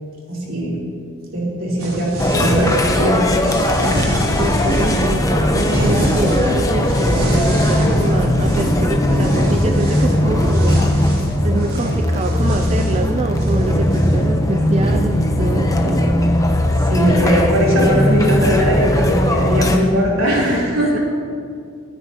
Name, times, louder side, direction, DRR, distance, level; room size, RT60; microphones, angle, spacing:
voice 1, 0.3-0.8 1.3-3.2 5.7-5.9 16.8-21.0, equal, 70° right, -5 dB, 3.4 m, -19 dB
sound 1, 1.8-3.0 3.3-5.2 5.5-6.6 6.8-8.8 9.1-14.2, equal, 85° right, 2.9 m, -25 dB
sound 2, 2.2-19.8, left 1 dB, 15° left, 0.7 m, -18 dB
voice 2, 3.8-10.8 11.4-16.0 20.9-21.0, right 3 dB, 30° right, 6 dB, 0.3 m, -25 dB
21.5 x 9.8 x 2.9 m, 2.4 s
head